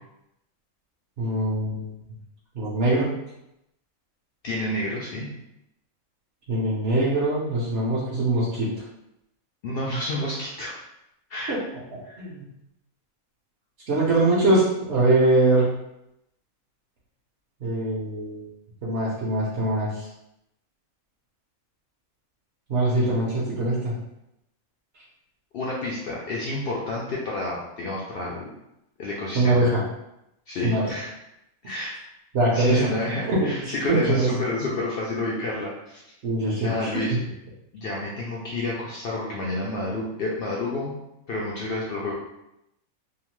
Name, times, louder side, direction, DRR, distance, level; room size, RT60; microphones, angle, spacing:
voice 1, 1.2-1.9 2.5-3.2 6.5-8.7 11.5-11.6 12.2-12.4 13.9-15.7 17.6-18.5 18.8-20.1 22.7-23.9 29.3-29.8 30.6-30.9 32.3-32.9 33.3-34.3 36.2-37.0, right 2 dB, 55° right, -7 dB, 0.8 m, -22 dB
voice 2, 4.4-5.3 9.6-10.7 11.3-11.5 12.0-12.2 25.5-28.5 29.0-29.6 30.5-31.1 31.6-32.0 32.5-36.0 36.6-37.2 37.7-40.9 41.3-42.1, left 2 dB, 75° left, -5 dB, 0.5 m, -29 dB
2.8 x 2.1 x 3.0 m, 0.85 s
omnidirectional pair, 1.5 m